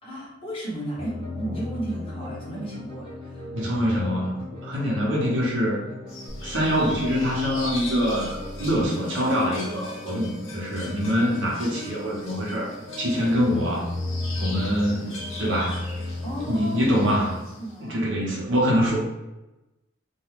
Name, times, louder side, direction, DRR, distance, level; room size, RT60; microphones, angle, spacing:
voice 1, 0.0-3.5 16.2-17.1 17.6-18.0, right 1 dB, 30° left, -7 dB, 1.0 m, -34 dB
sound 1, 1.0-17.4, left 2 dB, 25° right, 0.9 m, -37 dB
voice 2, 3.5-5.8 6.4-13.9 14.4-15.9 16.5-17.4 17.8-19.0, equal, 70° right, -4 dB, 0.8 m, -24 dB
sound 2, 6.1-17.8, left 2 dB, 85° left, 0.7 m, -41 dB
sound 3, 6.3-9.1, equal, 5° right, 0.6 m, -40 dB
2.4 x 2.3 x 3.1 m, 0.99 s
head